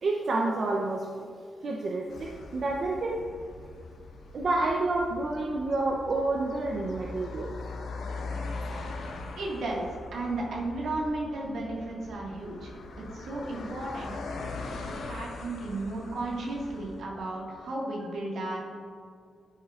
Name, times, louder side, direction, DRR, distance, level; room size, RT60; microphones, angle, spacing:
voice 1, 0.0-1.3 1.6-3.1 4.3-7.5, right 2 dB, 55° right, -1 dB, 0.7 m, -29 dB
sound 1, 2.1-17.0, left 3 dB, 80° left, 0.9 m, -41 dB
voice 2, 9.4-9.8 10.1-14.1 14.6-18.6, right 2 dB, 80° right, -2 dB, 1.8 m, -34 dB
11.0 x 6.1 x 2.5 m, 2.3 s
cardioid pair, 95°, 0 cm